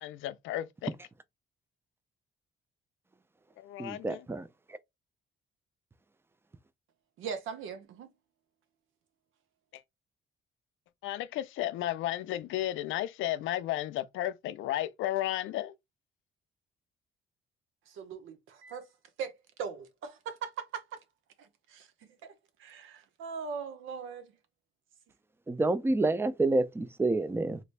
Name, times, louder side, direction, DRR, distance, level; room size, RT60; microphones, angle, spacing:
voice 1, 0.0-0.9 3.6-4.2 11.0-15.7, left 13 dB, 85° left, 0.4 m, -33 dB
voice 2, 3.8-4.8 25.5-27.6, right 2 dB, 10° right, 0.4 m, -29 dB
voice 3, 7.2-8.1 17.9-18.9 19.2-19.3 19.6-21.0 21.4-22.3 22.6-24.3, right 6 dB, 85° right, 0.7 m, -40 dB
3.3 x 2.5 x 3.2 m
cardioid pair, 90°, 20 cm